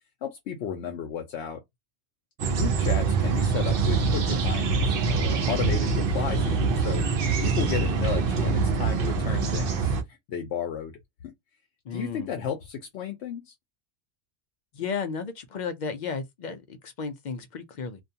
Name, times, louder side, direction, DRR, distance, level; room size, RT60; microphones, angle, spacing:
voice 1, 0.2-1.6 2.5-10.9 11.2-11.3 11.9-13.5, left 8 dB, 75° left, 0.9 m, -33 dB
sound 1, 2.4-10.0, right 4 dB, 60° right, 0.7 m, -24 dB
voice 2, 11.9-12.3 14.7-18.0, left 5 dB, 55° left, 0.5 m, -33 dB
2.4 x 2.3 x 2.6 m
omnidirectional pair, 1.1 m